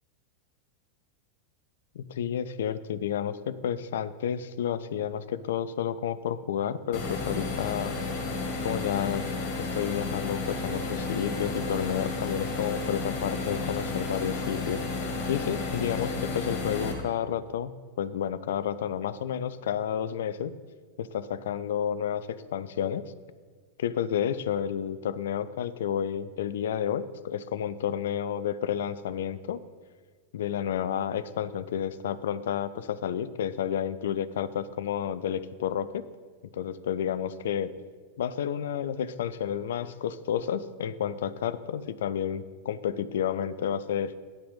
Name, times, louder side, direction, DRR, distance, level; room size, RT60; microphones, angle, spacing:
voice 1, 1.9-7.9 8.6-9.3 9.6-14.8 15.3-17.7 18.0-20.5 21.0-23.0 23.8-29.6 30.3-36.1 36.5-37.7 38.2-44.1, left 9 dB, 60° left, 15 dB, 0.4 m, -30 dB
sound 1, 6.9-16.9, left 3 dB, 45° left, 2.0 m, -32 dB
9.6 x 5.7 x 5.4 m, 1.5 s
figure-of-eight pair, 90°, 0 cm